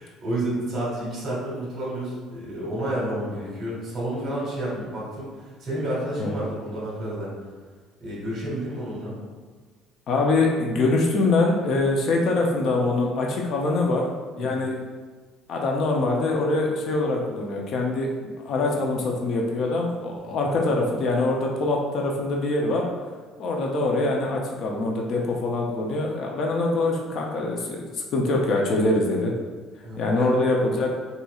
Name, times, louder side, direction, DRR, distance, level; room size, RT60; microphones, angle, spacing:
voice 1, 0.0-7.3 8.0-9.2 14.4-14.6 20.3-20.4 29.8-30.3, right 1 dB, 35° right, -6 dB, 1.5 m, -30 dB
voice 2, 10.1-14.1 14.4-14.8 15.5-18.1 18.4-22.9 23.4-29.3 30.0-30.9, left 2 dB, 50° left, 0 dB, 0.4 m, -24 dB
4.1 x 2.7 x 2.3 m, 1.4 s
cardioid pair, 150°, 0 cm